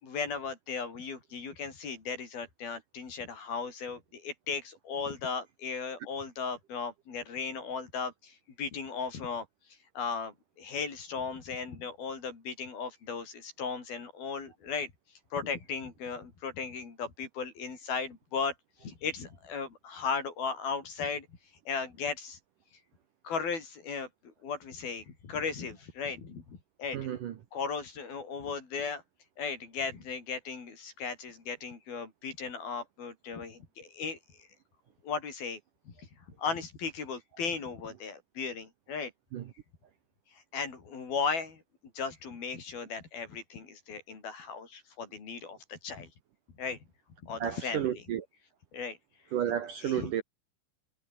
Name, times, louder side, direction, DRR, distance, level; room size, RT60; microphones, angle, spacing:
voice 1, 0.0-9.5 9.9-14.9 15.3-18.5 18.8-21.3 21.7-22.4 23.2-24.1 24.4-27.1 27.5-29.0 29.4-34.2 35.0-35.6 35.9-36.0 36.4-39.1 40.5-41.6 41.9-46.1 46.6-46.8 47.2-48.0 48.7-49.0 49.8-50.1, left 5 dB, 55° left, 6.8 m, -36 dB
voice 2, 26.9-27.3 39.3-39.4 47.4-48.3 49.3-50.2, right 10 dB, 60° right, 2.4 m, -32 dB
omnidirectional pair, 5.1 m